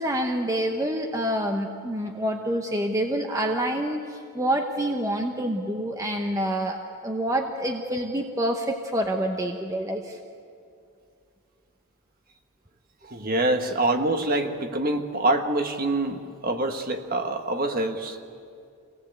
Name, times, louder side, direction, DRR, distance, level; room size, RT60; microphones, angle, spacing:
voice 1, 0.0-10.2, right 1 dB, 15° right, 3 dB, 1.0 m, -27 dB
voice 2, 13.0-18.2, right 2 dB, 40° right, 5 dB, 1.5 m, -25 dB
25.5 x 19.0 x 8.1 m, 2.4 s
head